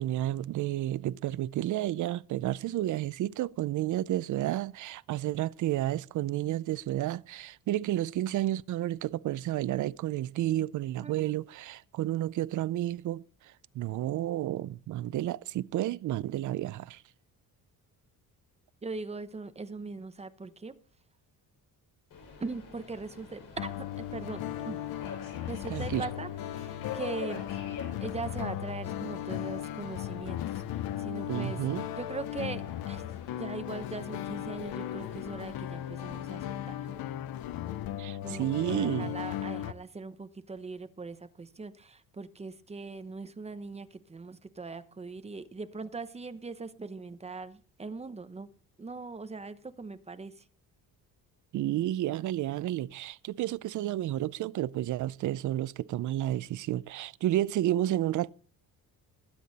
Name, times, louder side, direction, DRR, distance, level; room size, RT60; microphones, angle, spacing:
voice 1, 0.0-17.0 25.7-26.1 31.3-31.9 38.0-39.1 51.5-58.3, right 14 dB, 55° right, 0.5 m, -31 dB
voice 2, 18.8-20.7 22.4-24.8 25.5-27.7 28.0-30.6 31.0-31.6 32.0-33.0 33.4-37.0 38.2-48.5 48.8-50.4 52.6-52.7, right 3 dB, 20° right, 0.9 m, -40 dB
Subway metro underground, 22.1-36.7, left 6 dB, 60° left, 6.2 m, -47 dB
sound 1, 23.6-39.7, left 12 dB, 80° left, 0.9 m, -37 dB
20.5 x 8.5 x 4.1 m
cardioid pair, 155°, 35 cm